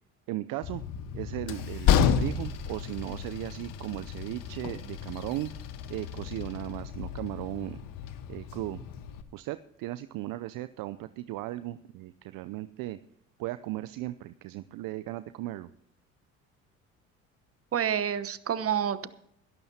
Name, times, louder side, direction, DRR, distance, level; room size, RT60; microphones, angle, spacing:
voice 1, 0.3-0.8 1.1-5.5 5.9-7.8 8.3-8.8 9.3-13.0 13.4-15.7, right 16 dB, 55° right, 13 dB, 0.6 m, -36 dB
Train, 0.6-9.2, left 8 dB, 55° left, 1.3 m, -31 dB
voice 2, 17.7-19.1, right 9 dB, 35° right, 14 dB, 1.1 m, -28 dB
21.5 x 12.0 x 2.8 m, 0.74 s
hypercardioid pair, 60°, 39 cm